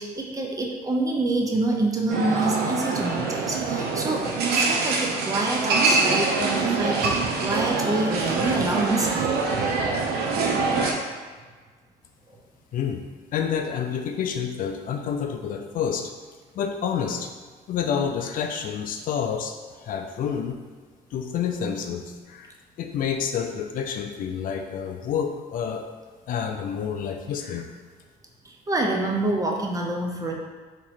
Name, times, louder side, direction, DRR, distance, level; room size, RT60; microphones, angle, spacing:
voice 1, 0.0-9.4 28.4-30.3, right 2 dB, 20° right, 0 dB, 0.5 m, -27 dB
sound 1, 2.1-10.9, right 3 dB, 70° right, 0.5 m, -24 dB
voice 2, 12.7-13.0 13.3-16.1 16.5-17.3 17.7-20.6 21.1-22.5 22.8-25.9 26.3-27.7, left 7 dB, 55° left, 4 dB, 0.4 m, -28 dB
3.0 x 2.6 x 4.1 m, 1.5 s
cardioid pair, 110°, 17 cm